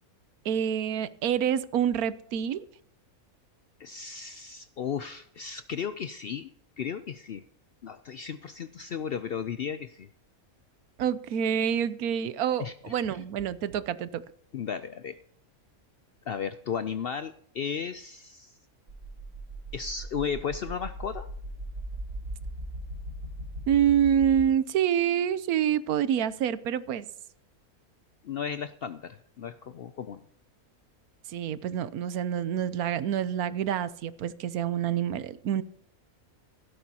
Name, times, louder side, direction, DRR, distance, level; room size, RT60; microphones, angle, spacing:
voice 1, 0.4-2.7 11.0-14.2 23.7-27.1 31.3-35.6, right 9 dB, 85° right, 16 dB, 1.2 m, -27 dB
voice 2, 3.8-6.5 6.8-7.4 7.8-10.1 12.6-13.0 14.5-15.2 16.3-18.6 19.7-21.3 28.2-30.2, left 7 dB, 65° left, 11 dB, 0.6 m, -35 dB
sound 1, 18.9-24.4, right 1 dB, 70° right, 3.8 m, -39 dB
16.0 x 12.5 x 2.9 m, 0.66 s
omnidirectional pair, 1.5 m